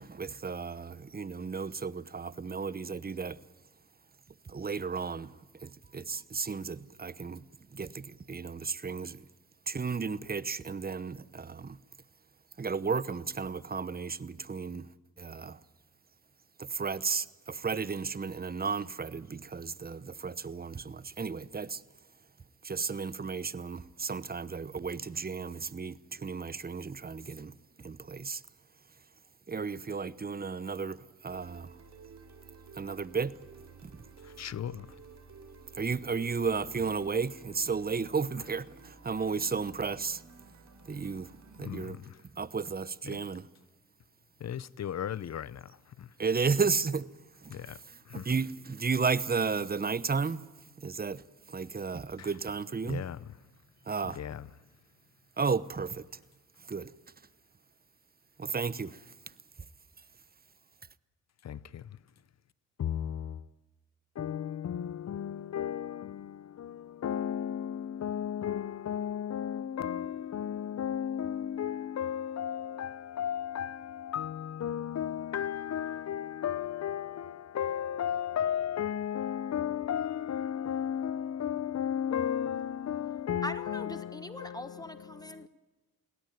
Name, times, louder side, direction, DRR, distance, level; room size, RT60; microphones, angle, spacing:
voice 1, 0.0-3.4 4.5-5.3 5.6-7.4 7.7-9.2 9.7-11.8 12.6-14.9 15.2-15.6 16.6-21.8 22.6-28.4 29.5-31.7 32.8-33.3 33.8-33.9 35.8-40.2 40.9-41.3 41.6-42.0 42.4-43.5 46.2-47.1 47.4-50.5 50.8-51.2 51.5-53.1 53.9-54.2 55.4-56.1 56.7-56.9 58.4-59.0, right 5 dB, 25° right, 0.9 m, -33 dB
sound 1, 31.3-41.9, right 4 dB, 55° right, 4.1 m, -53 dB
voice 2, 34.4-34.9 41.6-42.2 43.1-43.2 44.4-45.6 46.0-46.1 47.5-47.8 48.1-48.3 52.2-52.3 52.8-53.2 54.2-54.4 61.4-61.8 62.8-63.4 64.2-84.6, left 9 dB, 50° left, 0.7 m, -34 dB
voice 3, 83.4-85.5, left 1 dB, 10° left, 1.2 m, -41 dB
22.0 x 17.5 x 9.3 m
supercardioid pair, 55°, 33 cm